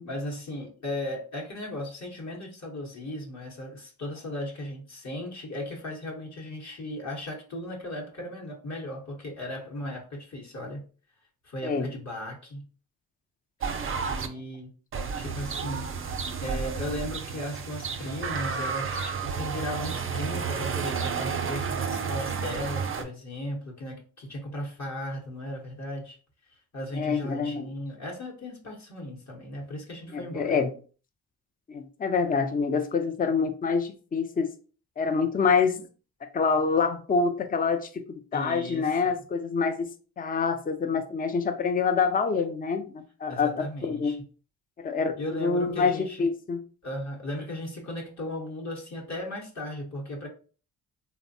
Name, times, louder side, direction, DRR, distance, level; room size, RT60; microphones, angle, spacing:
voice 1, 0.0-10.8 11.4-12.6 14.0-14.7 15.1-15.9 16.4-26.2 26.5-30.6 38.3-39.2 43.3-44.2 45.2-46.3 46.8-50.3, left 1 dB, 45° left, -1 dB, 0.9 m, -36 dB
sound 1, 13.6-14.3 14.9-23.0, right 5 dB, 35° right, 0.4 m, -31 dB
voice 2, 27.0-27.6 30.1-30.7 31.7-34.5 35.0-35.9 36.3-39.9 40.2-44.2 44.8-45.1 45.4-46.6, left 5 dB, 25° left, 7 dB, 0.4 m, -26 dB
3.3 x 2.1 x 2.6 m, 0.38 s
cardioid pair, 65°, 39 cm